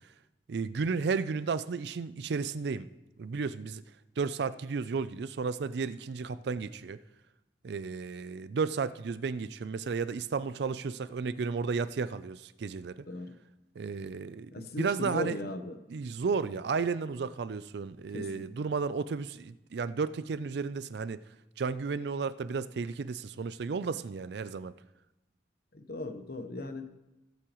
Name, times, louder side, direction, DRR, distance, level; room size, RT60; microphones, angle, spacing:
voice 1, 0.5-2.9 3.2-3.8 4.2-7.0 7.6-13.1 13.8-15.4 15.9-21.2 21.6-24.7, right 5 dB, 60° right, 0.4 m, -33 dB
voice 2, 14.5-15.8 18.1-18.5 25.7-26.9, left 2 dB, 55° left, 1.0 m, -37 dB
18.5 x 8.4 x 3.1 m
head